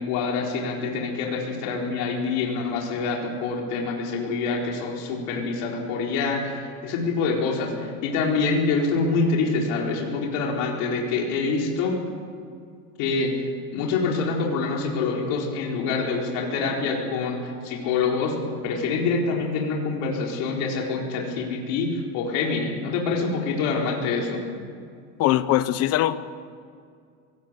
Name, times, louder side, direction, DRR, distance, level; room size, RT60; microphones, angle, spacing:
voice 1, 0.0-12.0 13.0-13.3 13.7-24.4, left 4 dB, 60° left, -1 dB, 4.4 m, -26 dB
voice 2, 25.2-26.2, left 14 dB, 40° left, 14 dB, 1.0 m, -21 dB
23.5 x 18.5 x 8.3 m, 2.2 s
cardioid pair, 170°, 36 cm